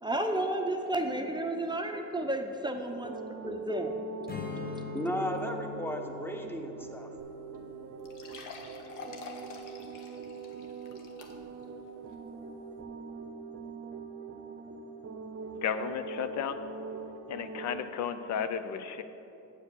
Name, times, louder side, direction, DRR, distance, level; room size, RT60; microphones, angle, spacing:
voice 1, 0.0-3.1 3.4-3.9, right 1 dB, 15° right, 4 dB, 0.6 m, -32 dB
sound 1, 2.9-17.8, right 4 dB, 50° right, 0.7 m, -43 dB
Strum, 4.3-9.6, left 6 dB, 30° left, 1.1 m, -44 dB
voice 2, 4.9-7.1, equal, 5° left, 4 dB, 0.9 m, -35 dB
sound 2, 7.2-7.3 7.5-7.6 8.0-11.6 12.1-12.2 12.8-12.9, left 3 dB, 85° left, 1.0 m, -47 dB
voice 3, 15.6-16.6 17.3-19.0, left 7 dB, 65° left, 10 dB, 0.5 m, -33 dB
8.2 x 4.8 x 6.8 m, 2.9 s
cardioid pair, 90°, 30 cm